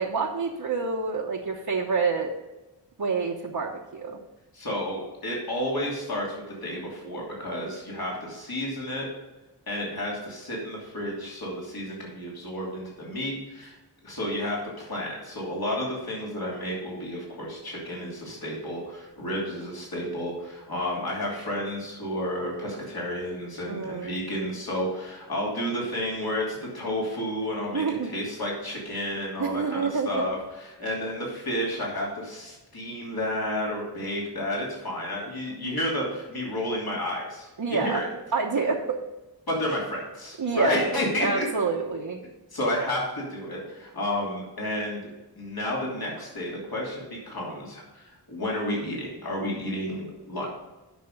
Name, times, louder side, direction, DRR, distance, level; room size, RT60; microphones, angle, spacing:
voice 1, 0.0-2.3 3.0-4.2 23.7-24.2 27.7-28.1 29.4-30.2 35.5-35.8 37.6-38.0 38.3-39.0 40.4-40.9 41.2-42.2, right 4 dB, 65° right, -2 dB, 1.0 m, -28 dB
voice 2, 4.5-9.1 9.7-13.8 14.0-38.1 39.5-41.5 42.5-45.0 45.4-50.5, left 1 dB, 65° left, -4 dB, 3.0 m, -31 dB
9.2 x 6.1 x 5.3 m, 1.1 s
wide cardioid pair, 80°, 40 cm